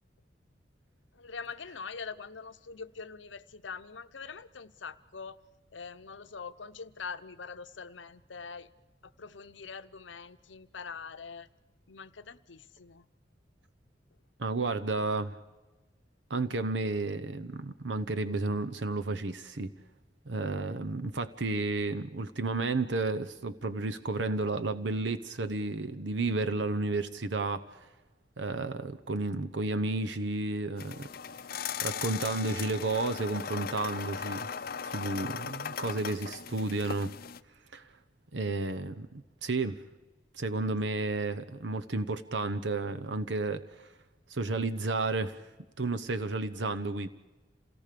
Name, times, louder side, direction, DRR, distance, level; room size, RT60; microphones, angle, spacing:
voice 1, 1.1-5.4 5.7-8.7 9.0-11.5 11.9-13.1, left 5 dB, 85° left, 11 dB, 0.9 m, -43 dB
voice 2, 14.4-15.4 16.3-19.7 20.3-27.6 28.4-31.1 31.8-34.5 34.8-37.2 37.7-37.9 38.3-39.8 40.3-43.6 44.3-45.4 45.8-47.1, right 2 dB, 75° right, 10 dB, 1.0 m, -32 dB
sound 1, 30.8-37.4, left 7 dB, 55° left, 0.6 m, -38 dB
27.5 x 18.0 x 6.8 m, 1.1 s
head